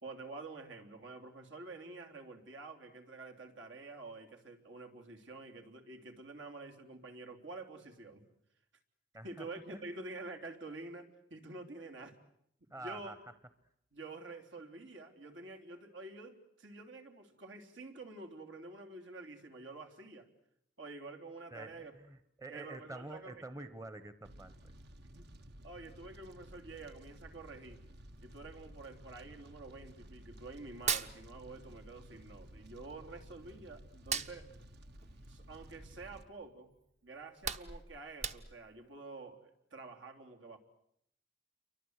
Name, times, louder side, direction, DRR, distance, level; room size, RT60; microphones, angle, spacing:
voice 1, 0.0-8.2 9.2-12.2 12.7-13.1 13.9-20.3 20.8-21.9 22.5-23.4 25.0-25.3 25.6-27.8 28.2-34.5 35.3-36.7 37.0-40.6, right 3 dB, 80° right, 3 dB, 3.5 m, -48 dB
voice 2, 9.1-9.9 12.7-13.3 21.5-24.7, right 2 dB, 15° right, 12 dB, 1.0 m, -48 dB
Fire, 24.2-36.2, equal, 60° right, 1.4 m, -54 dB
Hands, 30.7-32.0 32.2-33.5 33.9-36.2 36.7-36.8 37.2-38.8, right 7 dB, 40° right, 1.0 m, -39 dB
29.5 x 24.0 x 8.1 m, 0.73 s
head